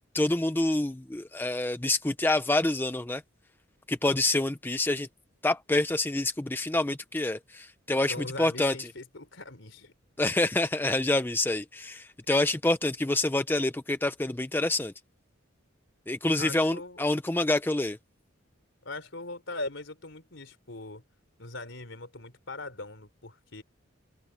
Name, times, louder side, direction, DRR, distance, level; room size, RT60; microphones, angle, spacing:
voice 1, 0.1-3.2 3.9-5.1 5.4-8.7 10.2-14.9 16.1-18.0, left 2 dB, 10° left, 0.4 m, -27 dB
voice 2, 8.1-9.9 16.4-17.1 18.8-21.0 21.4-23.6, left 2 dB, 65° left, 4.1 m, -40 dB
head